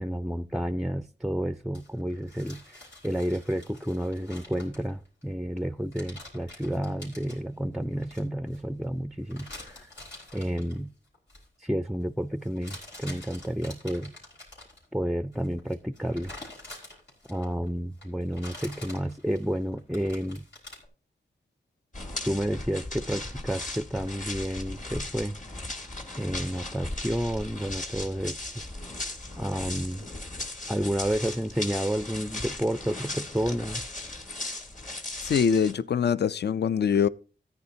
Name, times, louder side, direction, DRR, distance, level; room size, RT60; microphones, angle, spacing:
voice 1, 0.0-9.9 10.3-10.9 11.6-14.1 14.9-16.3 17.3-20.5 22.2-25.4 26.2-28.7 29.4-30.1 30.7-33.8, equal, ahead, 0.4 m, -30 dB
sound 1, 1.7-5.2 5.6-5.7 5.9-7.4 8.0-8.6 9.3-10.8 11.1-11.5 12.4-14.8 15.3-17.7 18.0-20.9, left 2 dB, 90° left, 4.2 m, -47 dB
sound 2, 21.9-35.7, left 2 dB, 45° left, 1.7 m, -37 dB
voice 2, 35.2-37.1, left 7 dB, 65° left, 0.4 m, -23 dB
14.0 x 9.6 x 2.7 m
cardioid pair, 60°, 19 cm